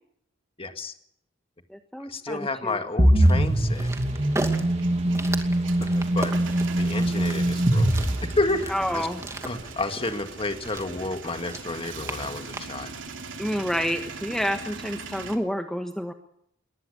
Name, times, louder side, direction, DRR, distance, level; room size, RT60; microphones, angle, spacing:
voice 1, 0.6-0.9 2.1-3.9 5.8-6.3 6.8-8.0 8.4-9.1 9.4-12.9, left 2 dB, 30° left, 7 dB, 1.9 m, -30 dB
voice 2, 1.7-2.8 8.7-9.2 13.4-16.1, equal, ahead, 6 dB, 1.3 m, -29 dB
sound 1, 3.0-9.0, right 1 dB, 35° right, 2.5 m, -22 dB
sound 2, 3.2-12.9, right 1 dB, 15° right, 2.5 m, -38 dB
Male speech man speaking / Vehicle / Engine starting, 3.8-15.4, right 4 dB, 75° right, 3.1 m, -41 dB
21.5 x 19.5 x 6.8 m, 0.74 s
head